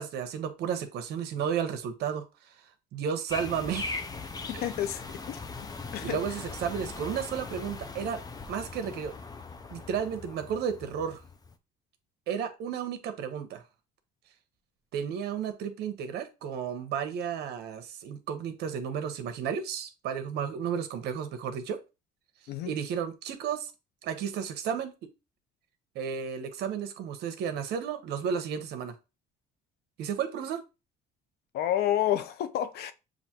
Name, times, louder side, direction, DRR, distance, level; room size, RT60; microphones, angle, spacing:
voice 1, 0.0-2.5 2.9-4.0 4.5-4.6 6.0-8.2 8.5-9.1 9.7-11.2 12.3-13.6 14.9-21.8 22.6-23.7 24.0-24.9 25.9-28.9 30.0-30.6, right 7 dB, 75° right, 1.0 m, -33 dB
sound 1, 3.3-11.5, left 4 dB, 20° left, 0.6 m, -40 dB
voice 2, 4.5-5.4 5.9-6.2 22.5-22.7 31.5-32.9, left 11 dB, 70° left, 0.7 m, -29 dB
7.1 x 2.6 x 2.9 m
cardioid pair, 110°, 17 cm